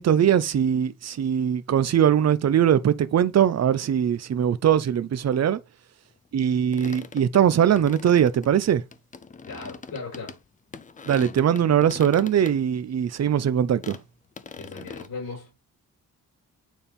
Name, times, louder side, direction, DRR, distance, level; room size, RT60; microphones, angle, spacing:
voice 1, 0.0-5.6 6.3-8.8 11.1-14.0, right 9 dB, 50° right, 0.6 m, -21 dB
sound 1, 6.5-10.4 10.7-12.5 12.9-13.0 13.3-13.4 13.8-14.0 14.4-15.1, left 5 dB, 25° left, 0.4 m, -41 dB
voice 2, 9.5-10.4 14.6-15.5, left 4 dB, 75° left, 5.1 m, -37 dB
9.2 x 3.5 x 4.1 m
wide cardioid pair, 150°, 34 cm